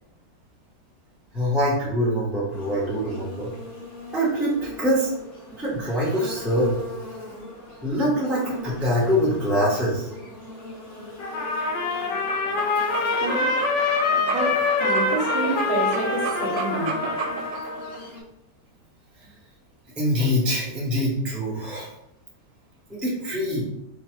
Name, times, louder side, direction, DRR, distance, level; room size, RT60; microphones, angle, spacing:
voice 1, 1.3-3.5 4.1-5.1 5.5-6.7 7.8-10.1 20.0-21.9 22.9-23.6, equal, ahead, -6 dB, 0.4 m, -24 dB
Buzz, 2.5-18.2, left 1 dB, 55° left, 1.7 m, -40 dB
Trumpet, 11.2-18.0, left 4 dB, 75° left, 1.3 m, -25 dB
sound 1, 12.1-17.6, right 6 dB, 85° right, 1.3 m, -33 dB
voice 2, 13.1-13.7 14.3-17.0, right 3 dB, 60° right, 0 dB, 1.2 m, -29 dB
3.8 x 2.1 x 4.4 m, 0.83 s
omnidirectional pair, 1.9 m